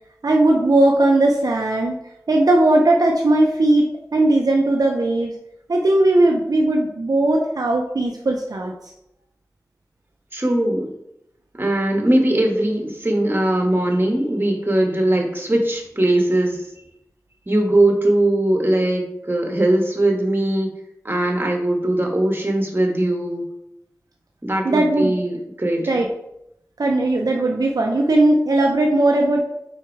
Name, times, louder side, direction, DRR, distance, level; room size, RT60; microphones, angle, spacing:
voice 1, 0.2-2.0 2.3-5.3 5.7-8.7 24.6-25.1 25.9-26.1 26.8-29.4, right 2 dB, 75° right, 1 dB, 0.6 m, -18 dB
voice 2, 10.3-10.9 11.5-16.6 17.5-20.7 21.0-23.4 24.4-25.8, right 1 dB, 35° right, 1 dB, 1.5 m, -20 dB
4.6 x 4.3 x 4.8 m, 0.83 s
wide cardioid pair, 40°, 6 cm